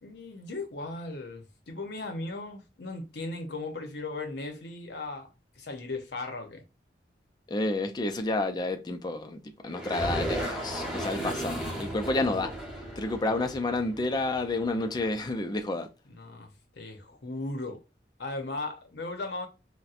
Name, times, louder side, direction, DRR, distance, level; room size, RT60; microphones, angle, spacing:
voice 1, 0.0-5.3 5.6-6.6 16.1-17.8 18.2-19.5, left 2 dB, 65° left, 0.8 m, -37 dB
voice 2, 7.5-12.5 13.0-15.9, left 2 dB, 25° left, 0.4 m, -30 dB
sound 1, 9.7-15.3, right 1 dB, 5° right, 0.9 m, -35 dB
4.1 x 2.2 x 2.4 m
head